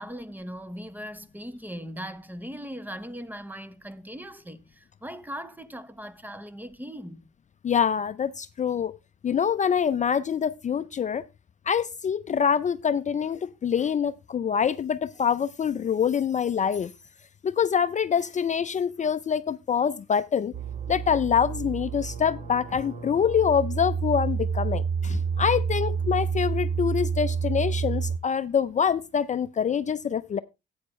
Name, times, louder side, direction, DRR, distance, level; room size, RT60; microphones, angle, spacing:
voice 1, 0.0-7.2, equal, 10° right, 1.0 m, -39 dB
voice 2, 7.6-8.9 9.2-11.2 11.7-16.9 17.4-20.5 20.9-30.4, left 7 dB, 40° left, 0.5 m, -25 dB
sound 1, 20.5-28.2, right 6 dB, 35° right, 1.2 m, -29 dB
13.0 x 8.7 x 3.1 m
cardioid pair, 90°, 20 cm